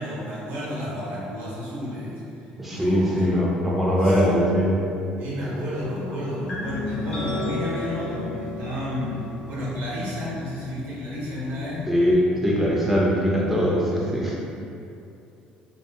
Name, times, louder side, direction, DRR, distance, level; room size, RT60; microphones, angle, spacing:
voice 1, 0.0-3.3 4.0-4.2 5.2-9.2 9.4-11.9, left 1 dB, 70° right, -8 dB, 0.9 m, -31 dB
voice 2, 2.6-4.8 11.9-14.4, equal, 5° right, -5 dB, 0.4 m, -21 dB
sound 1, 6.5-12.1, left 2 dB, 35° left, 0.6 m, -34 dB
2.4 x 2.4 x 2.3 m, 2.6 s
supercardioid pair, 85°, 3 cm